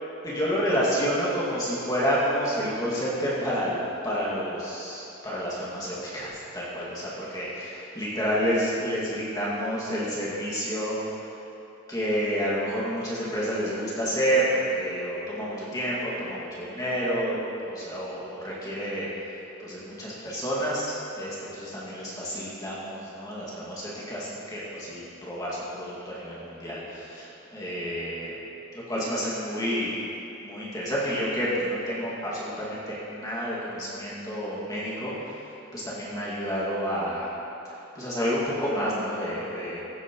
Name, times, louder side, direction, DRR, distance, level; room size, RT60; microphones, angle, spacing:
voice 1, 0.2-11.0 11.9-17.4 17.6-19.1 19.6-28.3 28.7-30.0 30.4-35.3 35.7-37.3 38.0-39.8, equal, 20° left, -8 dB, 2.0 m, -29 dB
15.0 x 8.9 x 3.0 m, 2.9 s
head